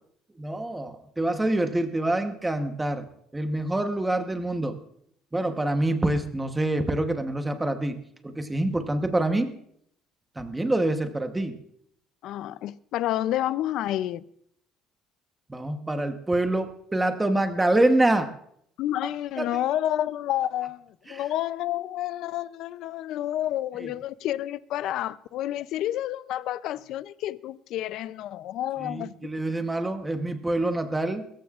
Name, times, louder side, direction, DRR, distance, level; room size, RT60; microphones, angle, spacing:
voice 1, 0.4-3.1 3.3-4.8 5.3-8.0 8.2-9.5 10.4-11.6 15.5-18.3 19.0-19.1 19.4-19.6 21.1-21.2 23.8-23.9 28.8-31.2, right 1 dB, 10° right, 1.0 m, -26 dB
voice 2, 12.2-14.2 18.8-29.3, left 13 dB, 55° left, 0.5 m, -29 dB
22.5 x 14.0 x 2.4 m
cardioid pair, 170°, 0 cm